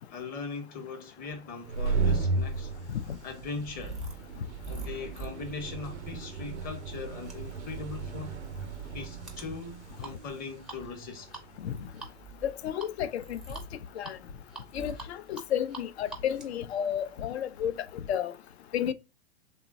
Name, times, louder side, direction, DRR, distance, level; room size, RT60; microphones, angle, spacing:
voice 1, 0.1-2.7 3.2-4.1 4.7-8.4 8.9-11.3, left 4 dB, 25° left, 0.8 m, -40 dB
sound 1, 1.5-12.0, right 4 dB, 90° right, 0.5 m, -35 dB
sound 2, 2.7-17.8, right 3 dB, ahead, 0.4 m, -46 dB
voice 2, 12.4-13.6 14.0-14.2 14.7-18.3 18.7-18.9, left 9 dB, 70° left, 0.5 m, -32 dB
3.1 x 2.1 x 2.5 m
hypercardioid pair, 115°, 33 cm